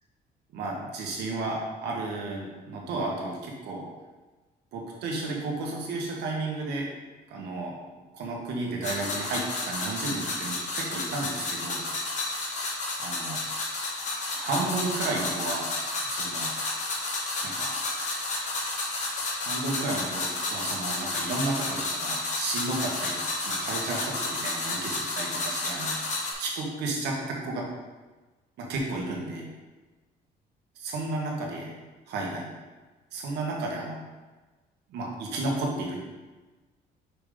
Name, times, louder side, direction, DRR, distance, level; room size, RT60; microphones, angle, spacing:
voice 1, 0.5-3.9 4.7-6.9 7.3-7.7 8.1-11.8 13.0-13.4 14.3-15.7 16.1-16.5 17.4-17.7 18.0-18.7 19.4-27.7 28.6-29.5 30.7-31.7 32.1-32.5 33.1-34.0 34.9-36.0, right 2 dB, 80° right, -1 dB, 1.6 m, -33 dB
sound 1, 8.8-26.3, left 2 dB, 45° left, 1.5 m, -31 dB
5.8 x 5.2 x 3.9 m, 1.2 s
cardioid pair, 110°, 17 cm